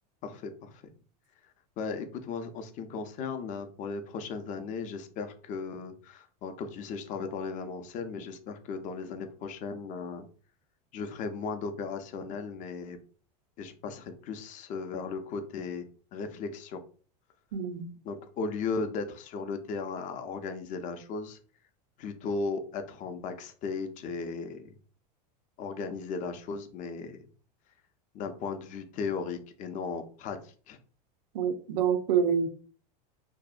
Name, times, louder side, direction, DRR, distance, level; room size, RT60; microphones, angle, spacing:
voice 1, 0.2-0.8 1.8-10.3 10.9-13.0 13.6-15.8 16.1-16.8 18.0-21.4 22.0-24.8 25.6-27.2 28.1-30.8, left 4 dB, 40° left, 0.4 m, -36 dB
voice 2, 17.5-17.8 31.3-32.5, right 7 dB, 85° right, 0.5 m, -26 dB
2.6 x 2.0 x 2.4 m
supercardioid pair, 120°, 21 cm